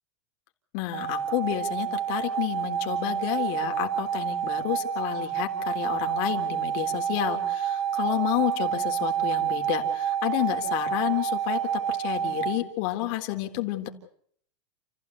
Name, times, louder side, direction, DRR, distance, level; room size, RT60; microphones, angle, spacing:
voice 1, 0.7-13.9, left 15 dB, 40° left, 4 dB, 3.6 m, -30 dB
sound 1, 0.9-12.6, right 9 dB, 60° right, 2.7 m, -29 dB
30.0 x 15.5 x 8.3 m, 0.64 s
supercardioid pair, 170°, 15 cm